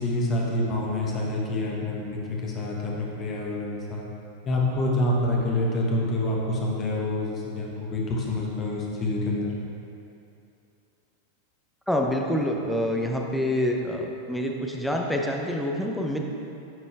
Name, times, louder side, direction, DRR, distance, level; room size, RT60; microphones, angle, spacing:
voice 1, 0.0-4.1 4.4-9.5, left 1 dB, 30° left, -3 dB, 1.3 m, -27 dB
voice 2, 11.9-16.2, left 1 dB, 5° left, 0 dB, 0.7 m, -26 dB
10.5 x 4.2 x 3.4 m, 2.8 s
figure-of-eight pair, 90°, 0 cm